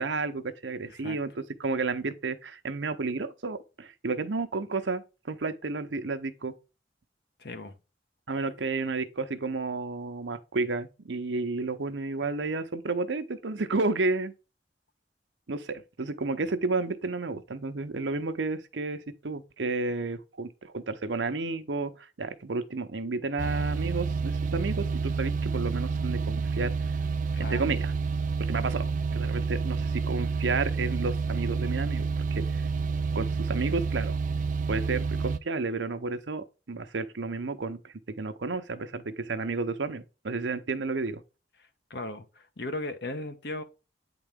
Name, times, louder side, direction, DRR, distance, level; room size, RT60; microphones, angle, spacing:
voice 1, 0.0-6.5 8.3-14.3 15.5-26.7 27.4-27.9 28.5-32.7 33.1-34.2 34.7-41.2, right 3 dB, 90° right, 0.8 m, -31 dB
voice 2, 7.4-7.7 27.3-27.8 41.6-43.6, left 2 dB, 65° left, 1.1 m, -37 dB
sound 1, 23.4-35.4, right 4 dB, 45° right, 0.4 m, -29 dB
9.0 x 3.9 x 3.6 m
head